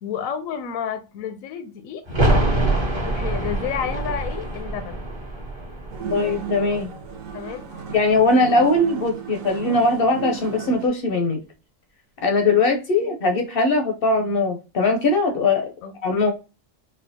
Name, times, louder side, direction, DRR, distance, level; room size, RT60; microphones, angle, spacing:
voice 1, 0.0-2.0 3.0-5.1 7.3-8.4 15.8-15.9, left 8 dB, 90° left, 1.0 m, -31 dB
sound 1, 2.1-7.6 7.9-8.0, right 1 dB, 35° right, 0.5 m, -25 dB
sound 2, 5.9-10.9, right 7 dB, 85° right, 1.0 m, -34 dB
voice 2, 6.1-6.9 7.9-11.4 12.2-15.7 16.0-16.3, left 2 dB, 60° left, 0.6 m, -20 dB
4.3 x 2.2 x 2.6 m
omnidirectional pair, 1.4 m